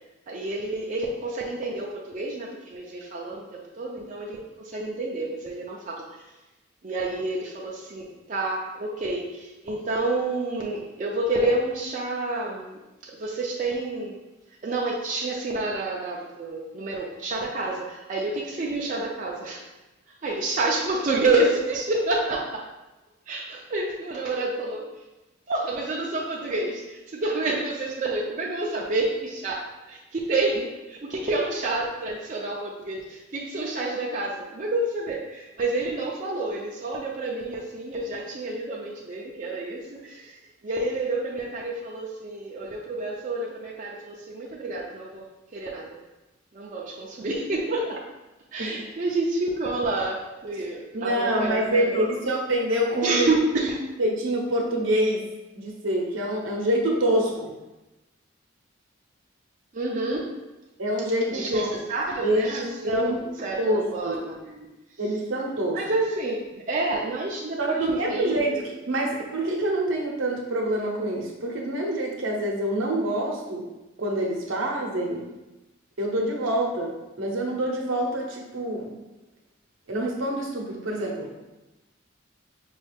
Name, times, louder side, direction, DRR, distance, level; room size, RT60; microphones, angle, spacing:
voice 1, 0.3-6.1 6.8-14.2 14.6-19.6 20.2-22.6 23.3-24.9 25.5-29.6 29.9-46.0 46.5-48.0 48.5-52.1 53.0-53.8 59.7-60.3 61.3-64.7 65.7-68.6, right 2 dB, 40° right, -3 dB, 0.4 m, -29 dB
voice 2, 50.9-53.3 54.0-55.2 55.6-57.5 60.8-61.8 62.2-63.2 63.6-64.2 65.0-65.8 67.6-73.7 74.0-75.3 76.0-78.9 79.9-81.3, right 1 dB, 80° right, -1 dB, 0.8 m, -26 dB
5.2 x 2.3 x 3.3 m, 1.0 s
head